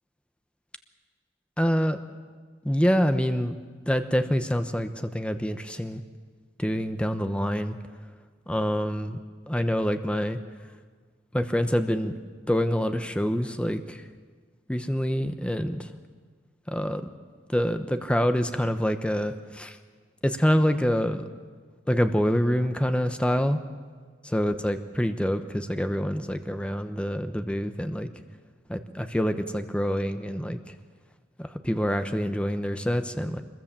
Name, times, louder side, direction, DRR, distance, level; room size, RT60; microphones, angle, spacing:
voice 1, 1.6-2.0 2.6-3.6 3.9-6.0 6.6-7.8 8.5-9.2 9.5-10.4 11.3-12.1 12.5-14.0 14.7-15.9 16.7-17.0 17.5-19.8 20.2-21.2 21.9-23.6 24.3-28.1 28.7-30.7 31.4-33.4, equal, 5° left, 8 dB, 1.0 m, -26 dB
26.0 x 21.5 x 7.5 m, 1.5 s
head